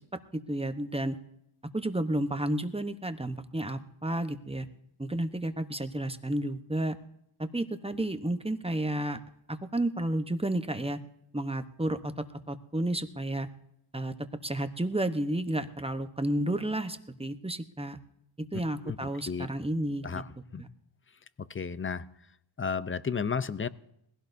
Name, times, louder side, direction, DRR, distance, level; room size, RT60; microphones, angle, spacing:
voice 1, 0.3-1.2 1.7-4.7 5.0-7.0 7.4-9.2 9.5-11.0 11.3-13.5 13.9-18.0 18.4-20.2 20.6-20.7, right 1 dB, 10° right, 9 dB, 0.9 m, -31 dB
voice 2, 21.4-22.0 22.6-23.7, left 6 dB, 25° left, 15 dB, 0.6 m, -32 dB
21.0 x 16.0 x 2.7 m, 0.76 s
wide cardioid pair, 80°, 49 cm